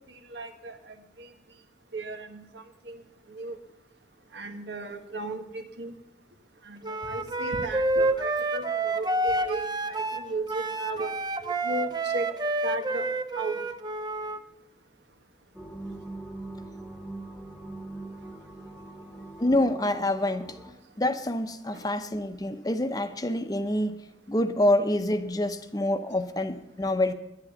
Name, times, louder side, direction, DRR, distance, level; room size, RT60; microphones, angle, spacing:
voice 1, 0.3-0.8 1.2-1.3 1.9-3.0 3.3-3.6 4.3-5.9 6.7-11.1 11.6-12.3 12.6-13.1 13.3-13.6 21.7-21.8, right 2 dB, 85° right, 1.4 m, -35 dB
Wind instrument woodwind instrument, 6.8-14.4, right 2 dB, 25° right, 0.6 m, -29 dB
sound 1, 15.5-20.7, right 2 dB, ahead, 1.2 m, -42 dB
voice 2, 19.4-20.6 21.0-24.0 24.3-27.1, left 1 dB, 20° left, 0.7 m, -26 dB
10.5 x 10.5 x 7.1 m
head